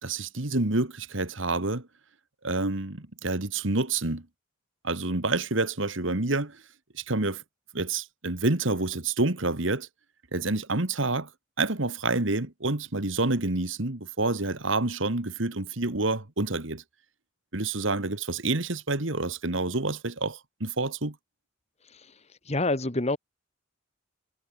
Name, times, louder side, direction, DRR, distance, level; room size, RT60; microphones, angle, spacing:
voice 1, 0.0-1.9 2.4-4.3 4.8-6.6 6.9-7.4 7.7-9.9 10.3-11.3 11.6-16.8 17.5-21.2, right 2 dB, 70° right, 2.0 m, -28 dB
voice 2, 22.4-23.2, left 2 dB, 30° left, 1.7 m, -27 dB
head